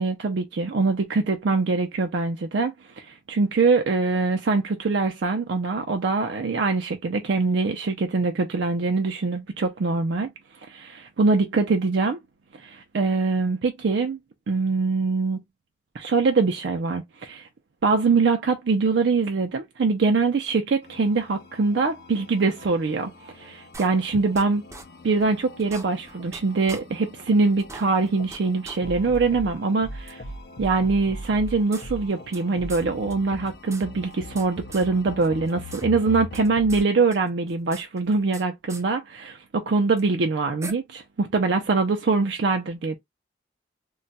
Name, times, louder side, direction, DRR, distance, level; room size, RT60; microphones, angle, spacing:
voice 1, 0.0-10.3 10.7-12.2 12.6-14.2 14.5-15.4 15.9-17.5 17.8-24.6 25.0-30.2 30.6-42.9, right 4 dB, 70° right, 0.4 m, -23 dB
sound 1, 20.8-36.8, left 1 dB, 55° left, 0.4 m, -41 dB
sound 2, 23.7-24.4 24.7-24.8 25.2-25.3 25.6-26.4 26.7-26.8 27.2-27.3 27.6-28.4 28.6-28.8 29.1-29.2 30.1-30.2 31.2-32.4 32.7-32.8 33.1-33.2 33.4-34.5 34.7-34.9 35.2-35.8 36.1-36.8 37.1-38.4 38.7-38.8 40.0-40.1 40.6-40.7, right 3 dB, 15° right, 0.5 m, -41 dB
2.3 x 2.2 x 3.9 m
head